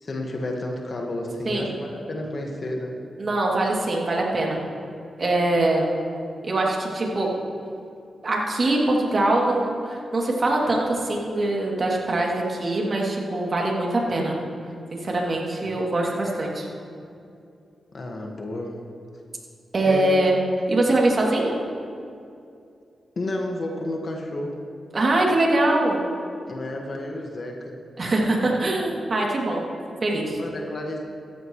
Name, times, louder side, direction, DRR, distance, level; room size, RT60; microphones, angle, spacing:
voice 1, 0.0-2.9 15.6-15.8 17.9-18.8 19.9-20.2 23.2-24.6 26.5-27.8 30.4-31.0, left 1 dB, 55° left, 0 dB, 1.8 m, -31 dB
voice 2, 3.2-4.6 5.2-5.9 6.4-7.3 8.2-14.4 15.0-16.7 19.7-20.3 20.7-21.6 24.9-26.0 28.0-29.6 30.0-30.4, right 2 dB, 50° right, -3 dB, 2.9 m, -23 dB
16.0 x 14.5 x 3.3 m, 2.5 s
cardioid pair, 50°, 0 cm